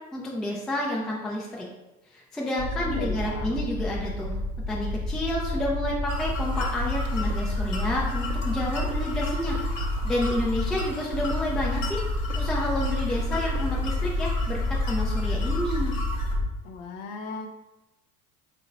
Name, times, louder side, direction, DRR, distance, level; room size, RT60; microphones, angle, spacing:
voice 1, 0.1-1.7 2.1-4.3 4.7-9.6 10.0-12.0 12.3-15.9, left 1 dB, ahead, -3 dB, 0.3 m, -30 dB
sound 1, 2.6-16.5, left 1 dB, 25° right, 0.9 m, -29 dB
voice 2, 2.8-3.7 16.6-17.5, left 4 dB, 55° left, 5 dB, 0.6 m, -37 dB
sound 2, 6.1-16.3, left 2 dB, 35° left, 1.1 m, -38 dB
sound 3, 6.8-7.9 8.2-8.4 8.8-8.9 9.4-10.4 10.8-14.8, right 3 dB, 75° right, 0.5 m, -41 dB
3.8 x 2.2 x 3.7 m, 1.0 s
hypercardioid pair, 80°, 43 cm